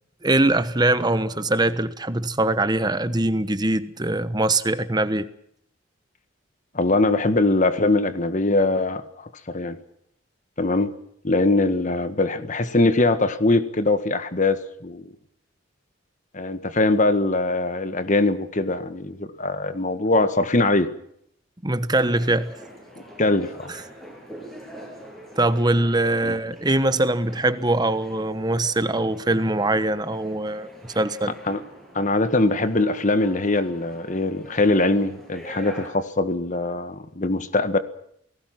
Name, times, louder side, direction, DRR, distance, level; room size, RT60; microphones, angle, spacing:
voice 1, 0.2-5.3 21.6-22.5 25.4-30.7 30.9-31.3, right 2 dB, 20° right, 1.2 m, -22 dB
voice 2, 6.7-9.8 10.6-10.9 11.2-15.1 16.3-20.9 23.2-23.7 26.2-26.3 31.5-31.6 31.9-37.8, left 2 dB, 40° left, 1.6 m, -22 dB
sound 1, 21.9-35.9, equal, ahead, 7.5 m, -44 dB
28.5 x 19.0 x 6.0 m
head